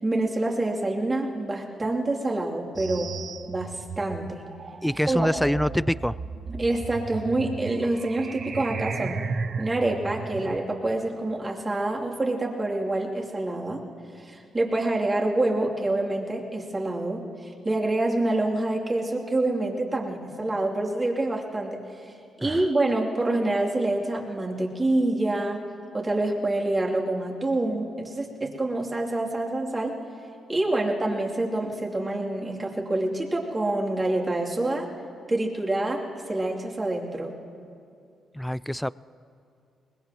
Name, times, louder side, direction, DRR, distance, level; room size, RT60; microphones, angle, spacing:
voice 1, 0.0-3.1 3.5-4.4 5.1-5.3 6.5-9.2 9.6-13.8 14.1-25.6 25.9-30.0 30.5-34.9 35.3-37.3, right 2 dB, 30° right, -2 dB, 3.0 m, -27 dB
sound 1, 2.7-10.6, right 5 dB, 50° right, 0.8 m, -35 dB
voice 2, 4.8-6.2 22.4-22.6 38.3-38.9, equal, 5° left, 19 dB, 0.3 m, -25 dB
22.5 x 20.5 x 3.0 m, 2.5 s
hypercardioid pair, 45°, 0 cm